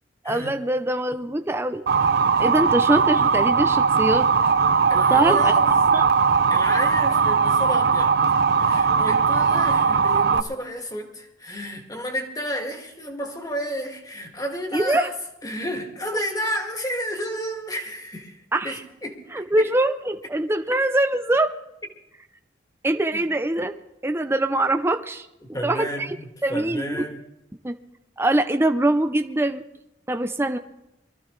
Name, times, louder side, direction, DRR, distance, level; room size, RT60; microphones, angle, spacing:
voice 1, 0.2-1.8 2.4-4.3 5.1-6.1 14.7-15.1 18.5-18.8 19.3-21.5 22.8-23.7 24.0-25.3 25.6-26.1 26.4-27.1 27.6-27.8 28.2-29.6 30.1-30.6, right 1 dB, 15° right, 8 dB, 0.6 m, -23 dB
Motor vehicle (road) / Siren, 1.9-10.4, right 5 dB, 60° right, 0.6 m, -19 dB
voice 2, 4.9-5.7 6.5-8.2 8.5-15.1 15.4-18.4 18.6-19.2 19.6-19.7 23.1-23.2 25.5-27.2, equal, 20° left, 3 dB, 2.0 m, -31 dB
23.0 x 14.0 x 3.2 m, 0.90 s
head